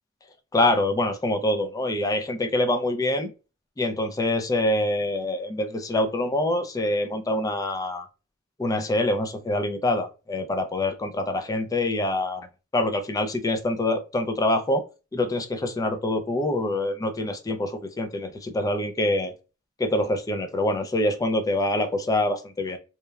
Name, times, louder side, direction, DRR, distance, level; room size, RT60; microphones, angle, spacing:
voice 1, 0.5-3.3 3.8-8.1 8.6-12.4 12.7-14.8 15.1-19.3 19.8-22.8, left 1 dB, 20° left, 7 dB, 0.3 m, -25 dB
2.9 x 2.1 x 2.2 m, 0.31 s
head